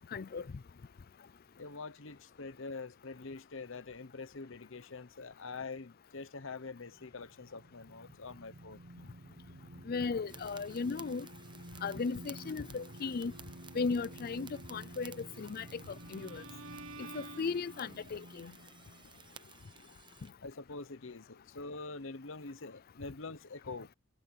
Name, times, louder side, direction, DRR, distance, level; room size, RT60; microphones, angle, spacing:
voice 1, 0.1-0.6 9.9-11.3 11.8-13.3 13.7-16.4 17.0-18.5, left 4 dB, 45° left, 0.4 m, -36 dB
voice 2, 1.6-8.8 20.4-23.9, left 3 dB, 65° left, 1.0 m, -45 dB
sound 1, 6.9-20.3, right 1 dB, 60° right, 1.4 m, -52 dB
sound 2, 10.3-20.3, right 7 dB, 20° right, 0.9 m, -56 dB
Bowed string instrument, 15.1-18.3, right 2 dB, 80° right, 2.3 m, -51 dB
head